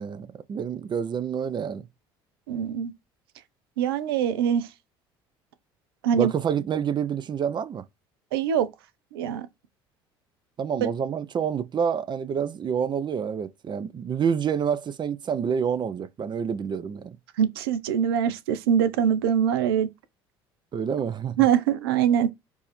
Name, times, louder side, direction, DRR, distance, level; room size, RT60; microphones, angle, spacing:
voice 1, 0.0-1.9 6.1-7.8 10.6-17.2 20.7-21.5, right 7 dB, 40° right, 0.6 m, -28 dB
voice 2, 2.5-2.9 3.8-4.7 6.0-6.3 8.3-8.7 9.1-9.5 10.8-10.9 17.4-19.9 21.4-22.3, right 9 dB, 85° right, 0.6 m, -23 dB
4.7 x 2.6 x 4.2 m
hypercardioid pair, 65°, 12 cm